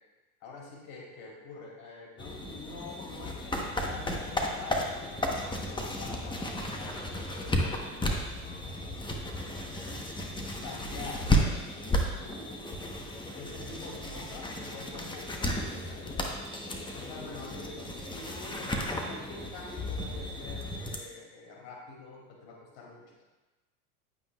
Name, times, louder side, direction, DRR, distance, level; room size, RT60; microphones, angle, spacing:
voice 1, 0.4-3.6 3.9-8.2 10.6-11.3 12.2-12.7 13.3-16.4 16.9-23.2, left 3 dB, 60° left, -2 dB, 2.6 m, -46 dB
sound 1, 2.2-21.0, left 1 dB, 10° left, 0.9 m, -33 dB
9.5 x 8.7 x 2.3 m, 1.1 s
hypercardioid pair, 100°, 45 cm